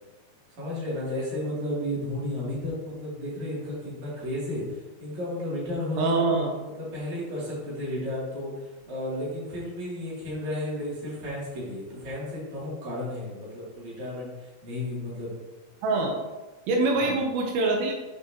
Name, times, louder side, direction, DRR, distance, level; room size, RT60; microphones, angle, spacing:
voice 1, 0.6-6.2 6.7-15.3 16.9-17.1, left 1 dB, 40° right, -7 dB, 3.7 m, -33 dB
voice 2, 6.0-6.5 15.8-16.2 16.7-17.9, right 3 dB, 85° right, 1 dB, 3.6 m, -24 dB
10.0 x 6.4 x 3.0 m, 1.2 s
omnidirectional pair, 5.6 m